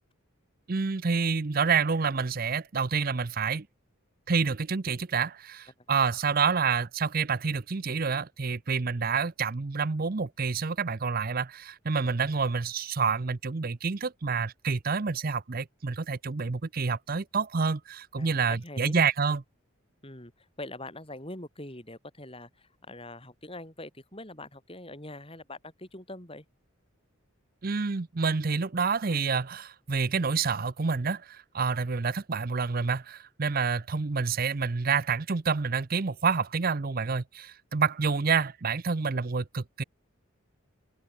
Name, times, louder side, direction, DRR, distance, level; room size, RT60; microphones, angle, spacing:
voice 1, 0.7-3.7 4.3-19.4 27.6-39.8, right 5 dB, 45° right, 0.6 m, -28 dB
voice 2, 18.2-19.0 20.0-26.4, left 1 dB, 25° left, 5.8 m, -43 dB
open air
head